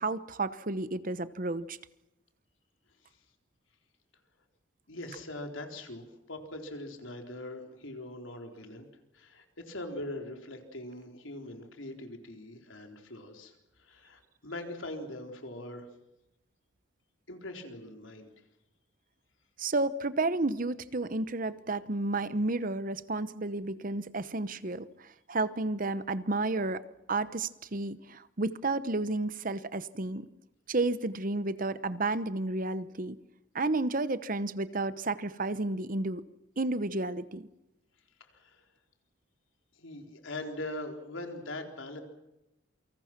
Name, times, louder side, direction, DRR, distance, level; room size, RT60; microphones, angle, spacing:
voice 1, 0.0-1.8 19.6-26.8 27.1-30.3 30.7-33.2 33.5-36.2 36.6-37.5, right 2 dB, 45° right, 14 dB, 1.0 m, -31 dB
voice 2, 4.9-8.9 9.1-15.9 17.3-18.3 38.2-38.7 39.8-42.0, left 1 dB, 80° left, 4 dB, 4.0 m, -42 dB
28.5 x 25.0 x 6.0 m, 0.93 s
head